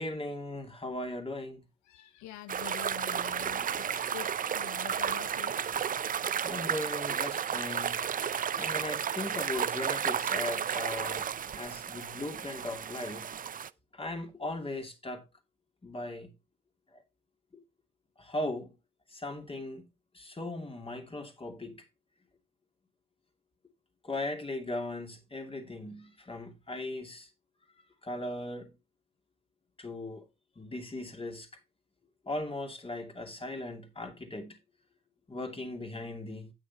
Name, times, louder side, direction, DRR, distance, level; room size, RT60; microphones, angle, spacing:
voice 1, 0.0-1.6 6.4-8.0 8.6-11.3 11.6-13.3 13.9-15.2 15.8-16.3 16.9-17.0 17.5-17.6 18.2-18.7 19.1-19.9 20.1-21.8 24.0-27.3 28.0-28.7 29.8-30.3 30.6-31.5 32.2-34.6 35.3-36.5, left 2 dB, 20° left, 2.6 m, -38 dB
voice 2, 1.8-5.5, left 13 dB, 80° left, 0.7 m, -46 dB
sound 1, 2.5-13.7, right 8 dB, 30° right, 0.5 m, -33 dB
9.1 x 6.5 x 4.1 m
cardioid pair, 90°, 29 cm